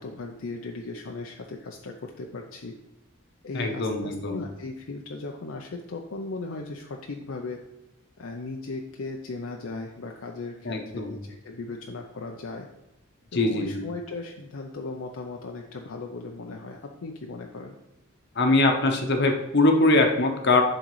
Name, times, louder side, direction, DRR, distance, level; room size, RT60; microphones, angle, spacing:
voice 1, 0.0-2.8 3.4-7.6 8.2-12.7 13.3-17.8, left 3 dB, 75° left, 2 dB, 0.6 m, -37 dB
voice 2, 3.5-4.4 10.6-11.1 13.3-13.8 18.4-20.6, left 2 dB, 55° left, 4 dB, 0.9 m, -22 dB
10.5 x 3.8 x 3.1 m, 0.90 s
head